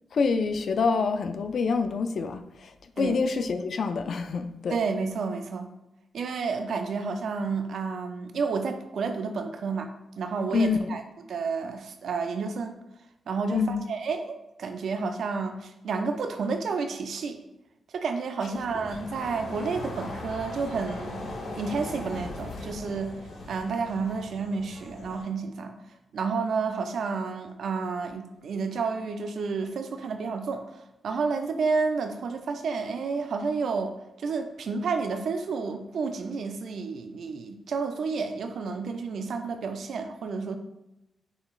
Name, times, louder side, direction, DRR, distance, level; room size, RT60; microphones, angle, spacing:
voice 1, 0.1-4.8 10.5-10.9 13.5-13.9, left 4 dB, 65° left, 9 dB, 0.4 m, -26 dB
voice 2, 4.7-5.7 6.1-9.9 10.2-11.0 11.3-12.8 13.3-17.4 17.9-21.3 21.6-23.2 23.5-25.7 26.1-30.7 31.0-40.6, right 4 dB, 75° right, 7 dB, 0.4 m, -30 dB
sound 1, 18.5-25.2, left 2 dB, 85° left, 1.2 m, -39 dB
7.0 x 3.0 x 2.4 m, 0.94 s
cardioid pair, 65°, 0 cm